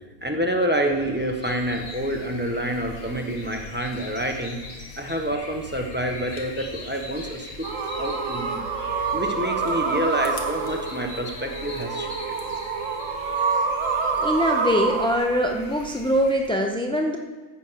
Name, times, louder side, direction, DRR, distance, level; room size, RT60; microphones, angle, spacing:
voice 1, 0.2-4.6 5.0-8.6 9.1-12.3, equal, 10° right, 2 dB, 1.0 m, -28 dB
sound 1, 0.9-16.5, left 1 dB, 50° left, 1.7 m, -44 dB
sound 2, 1.4-16.3, left 3 dB, 85° left, 1.9 m, -44 dB
sound 3, 7.6-15.2, right 5 dB, 65° right, 1.3 m, -27 dB
voice 2, 14.2-17.2, equal, 5° left, 2 dB, 0.3 m, -23 dB
14.5 x 7.2 x 5.7 m, 1.3 s
omnidirectional pair, 1.5 m